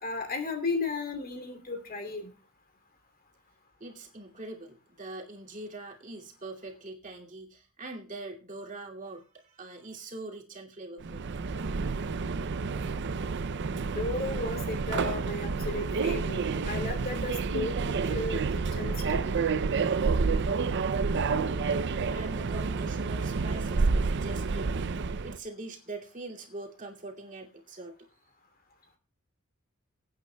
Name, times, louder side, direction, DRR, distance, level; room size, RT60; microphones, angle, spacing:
voice 1, 0.0-2.3 13.8-18.4 18.7-19.2, left 3 dB, 45° left, 5 dB, 2.7 m, -34 dB
voice 2, 3.8-11.2 21.1-24.9 25.2-27.9, right 2 dB, 40° right, -1 dB, 2.5 m, -43 dB
Subway metro underground, 11.0-25.4, right 4 dB, 55° right, 0.5 m, -29 dB
23.0 x 9.0 x 2.2 m, 0.37 s
head